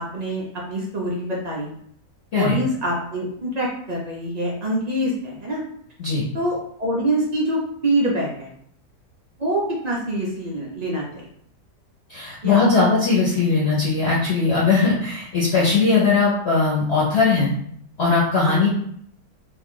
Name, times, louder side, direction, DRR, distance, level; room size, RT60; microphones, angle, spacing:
voice 1, 0.0-1.7 2.3-5.6 6.3-8.5 9.4-11.0 12.4-12.6 18.4-18.7, right 1 dB, 80° right, -4 dB, 0.3 m, -25 dB
voice 2, 12.1-17.5 18.0-18.7, left 4 dB, 50° left, -7 dB, 1.0 m, -19 dB
2.9 x 2.4 x 3.7 m, 0.66 s
omnidirectional pair, 1.8 m